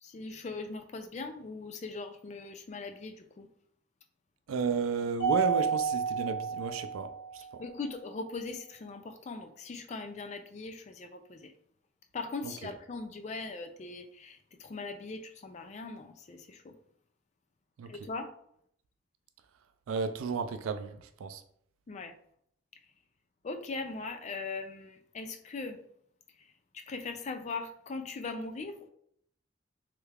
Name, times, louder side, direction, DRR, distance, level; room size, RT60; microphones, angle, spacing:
voice 1, 0.0-3.5 7.6-11.5 12.1-16.7 17.9-18.3 21.9-22.1 23.4-25.8 26.7-28.9, left 3 dB, 35° left, 0.3 m, -40 dB
voice 2, 4.5-7.6 12.4-12.7 17.8-18.1 19.9-21.4, right 5 dB, 85° right, 0.3 m, -33 dB
Mallet percussion, 5.2-7.6, right 6 dB, 60° left, 1.3 m, -31 dB
3.2 x 2.3 x 3.3 m
head